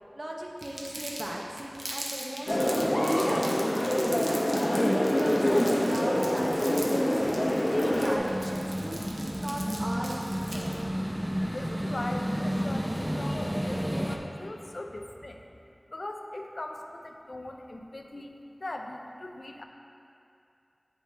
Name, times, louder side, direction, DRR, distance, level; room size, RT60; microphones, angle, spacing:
voice 1, 0.1-3.8 4.2-7.3 7.6-10.7, right 1 dB, 50° right, -2 dB, 0.8 m, -38 dB
Crumpling crinkling, 0.6-10.8, right 1 dB, 85° right, 0.8 m, -41 dB
sound 1, 2.5-8.2, left 1 dB, 35° left, 0.7 m, -25 dB
sound 2, 7.6-14.2, equal, 10° right, 0.5 m, -32 dB
voice 2, 11.5-15.4 15.9-18.3 18.6-19.6, left 1 dB, 70° left, 3 dB, 0.4 m, -39 dB
7.9 x 5.0 x 3.3 m, 2.7 s
wide cardioid pair, 50°, 0 cm